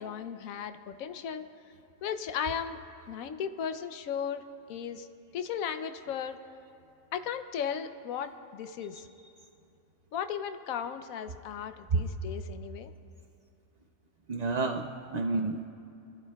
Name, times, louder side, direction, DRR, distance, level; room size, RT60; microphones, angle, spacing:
voice 1, 0.0-1.4 2.0-2.8 3.1-4.4 4.7-5.1 5.3-6.4 7.1-9.0 10.1-12.9, left 8 dB, 80° left, 9 dB, 1.1 m, -36 dB
voice 2, 14.3-15.7, right 3 dB, 75° right, 4 dB, 0.3 m, -29 dB
25.0 x 14.0 x 2.3 m, 2.6 s
omnidirectional pair, 1.5 m